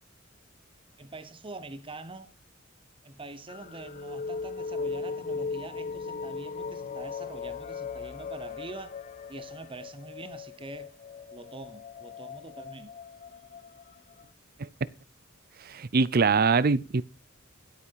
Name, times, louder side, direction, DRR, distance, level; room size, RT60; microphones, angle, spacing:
voice 1, 1.0-2.3 3.0-9.0 9.3-10.9 11.3-12.9, right 2 dB, 25° right, 0.9 m, -44 dB
sound 1, 3.5-14.2, left 5 dB, 35° left, 0.5 m, -38 dB
voice 2, 15.6-17.0, right 4 dB, 45° right, 0.6 m, -23 dB
11.5 x 8.5 x 4.6 m
head